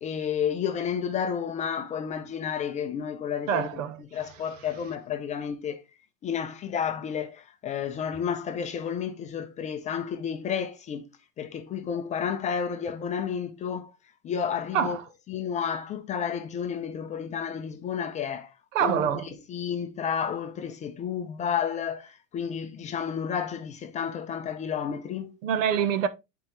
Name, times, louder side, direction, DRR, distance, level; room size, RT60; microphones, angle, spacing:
voice 1, 0.0-5.8 6.2-11.1 11.4-13.9 14.2-15.0 15.3-18.5 18.8-19.0 19.5-25.4, left 7 dB, 20° left, 0.5 m, -31 dB
voice 2, 3.5-4.0 14.7-15.0 18.7-19.3 25.4-26.1, right 8 dB, 75° right, 1.2 m, -25 dB
9.6 x 4.5 x 3.2 m
supercardioid pair, 140°, 39 cm